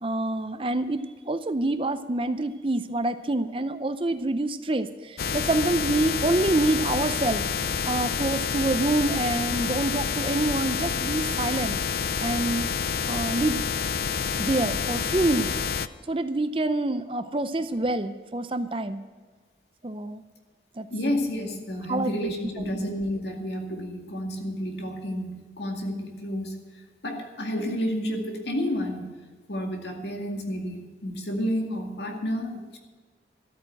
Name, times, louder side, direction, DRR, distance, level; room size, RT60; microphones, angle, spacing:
voice 1, 0.0-11.8 12.2-12.7 13.0-13.7 14.4-15.5 16.1-19.0 19.8-20.2 20.8-20.9 21.9-22.7, right 2 dB, 30° right, 11 dB, 0.6 m, -27 dB
sound 1, 5.2-15.9, left 6 dB, 60° left, 0.5 m, -28 dB
voice 2, 20.9-26.6 27.0-29.2 29.5-32.8, equal, 80° left, 2 dB, 2.2 m, -30 dB
13.5 x 8.8 x 7.7 m, 1.4 s
head